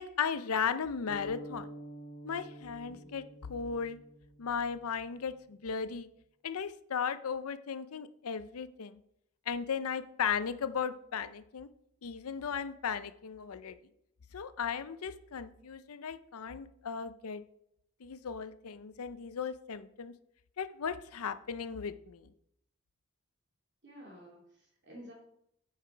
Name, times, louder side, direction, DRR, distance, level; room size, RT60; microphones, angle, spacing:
voice 1, 0.0-1.7 2.2-4.0 4.4-6.1 6.4-9.0 9.5-11.7 12.0-13.8 14.3-17.4 18.0-20.1 20.6-22.3, left 6 dB, 85° left, 12 dB, 0.6 m, -36 dB
sound 1, 1.1-5.0, equal, 20° left, 3.3 m, -48 dB
voice 2, 23.8-25.1, equal, 50° right, -2 dB, 3.0 m, -52 dB
9.5 x 5.8 x 4.5 m, 0.75 s
head